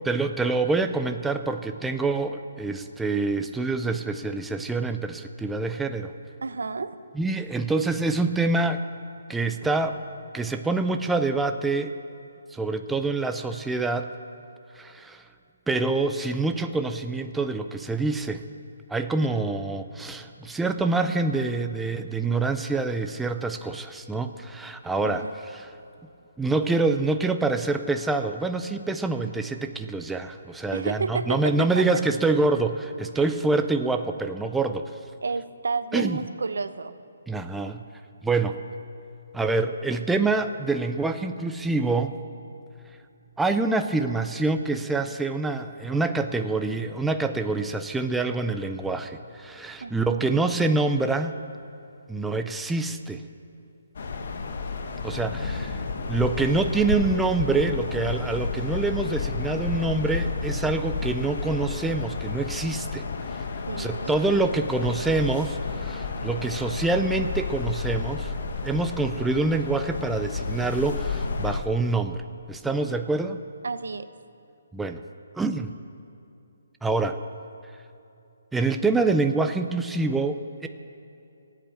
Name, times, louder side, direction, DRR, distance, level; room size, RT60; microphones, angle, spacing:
voice 1, 0.1-6.1 7.2-8.8 9.3-10.0 10.3-11.9 12.5-14.1 14.8-15.2 15.7-18.4 18.9-25.2 25.6-25.7 26.4-34.9 35.9-36.2 37.3-37.8 38.2-38.6 39.3-42.2 43.4-51.3 52.1-53.2 55.0-55.8 56.1-63.1 63.8-68.3 68.6-73.4 74.7-75.0 75.3-75.7 76.8-77.2 78.5-80.7, right 3 dB, 5° right, 7 dB, 0.4 m, -26 dB
voice 2, 6.4-7.0 19.3-19.5 25.0-25.3 30.7-32.0 33.1-33.2 35.2-36.9 49.8-50.2 63.7-64.2 73.6-74.1, right 4 dB, 80° right, 12 dB, 0.8 m, -31 dB
sound 1, 53.9-71.6, left 4 dB, 50° left, 1.2 m, -31 dB
16.0 x 8.2 x 8.8 m, 2.7 s
hypercardioid pair, 170°, 0 cm